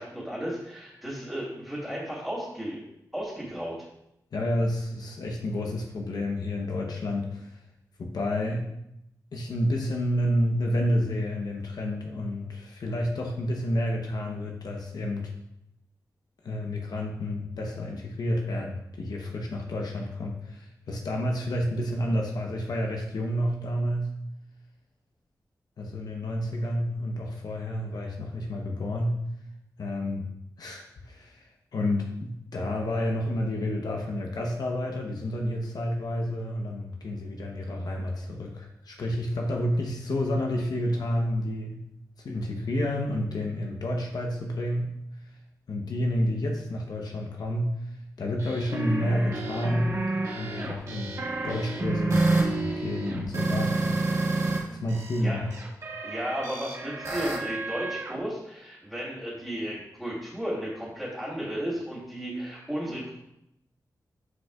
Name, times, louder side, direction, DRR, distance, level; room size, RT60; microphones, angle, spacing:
voice 1, 0.0-2.8 3.1-3.8 55.2-55.4 56.0-63.1, equal, ahead, -10 dB, 2.4 m, -34 dB
voice 2, 4.3-7.6 8.0-8.7 9.3-15.3 16.4-24.1 25.8-29.2 29.8-30.2 30.6-41.8 42.2-44.9 45.2-45.3 45.7-47.9 48.2-49.9 50.3-51.1 51.4-53.8 54.7-55.5, left 1 dB, 75° left, 1 dB, 0.9 m, -30 dB
sound 1, 48.4-54.6 54.9-58.2, right 2 dB, 50° right, 1.8 m, -29 dB
9.6 x 5.2 x 2.4 m, 0.81 s
wide cardioid pair, 100°, 7 cm